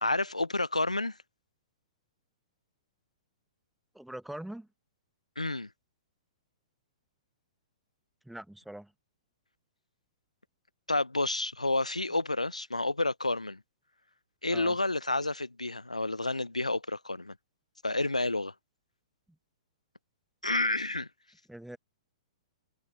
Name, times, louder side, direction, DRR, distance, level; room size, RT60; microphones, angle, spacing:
voice 1, 0.0-1.2 5.4-5.7 10.9-13.6 14.4-17.3 17.8-18.5 20.4-21.1, left 2 dB, 85° left, 0.8 m, -30 dB
voice 2, 3.9-4.7 8.2-8.9 14.5-14.8 21.5-21.8, right 1 dB, ahead, 1.0 m, -42 dB
figure-of-eight pair, 110°, 4 cm